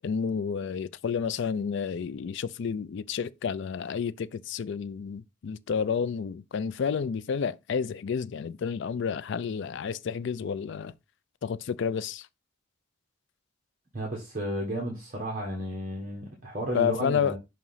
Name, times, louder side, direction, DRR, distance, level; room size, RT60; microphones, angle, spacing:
voice 1, 0.0-10.9 11.4-12.3 16.7-17.4, left 6 dB, 55° left, 0.3 m, -30 dB
voice 2, 13.9-17.4, right 1 dB, 40° right, 1.3 m, -33 dB
6.0 x 2.9 x 5.5 m
head